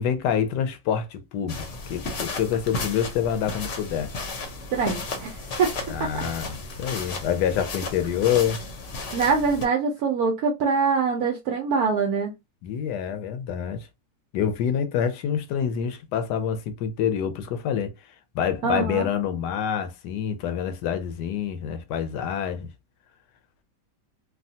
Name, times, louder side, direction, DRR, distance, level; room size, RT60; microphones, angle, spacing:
voice 1, 0.0-1.6 1.9-4.1 5.9-8.6 12.6-13.9 14.3-17.9 18.3-22.7, left 8 dB, 80° left, 1.2 m, -27 dB
sound 1, 1.5-9.6, left 3 dB, 55° left, 0.9 m, -34 dB
voice 2, 4.7-5.7 6.0-6.2 9.1-12.4 18.6-19.1, right 5 dB, 70° right, 1.0 m, -24 dB
3.4 x 2.3 x 2.7 m
omnidirectional pair, 1.8 m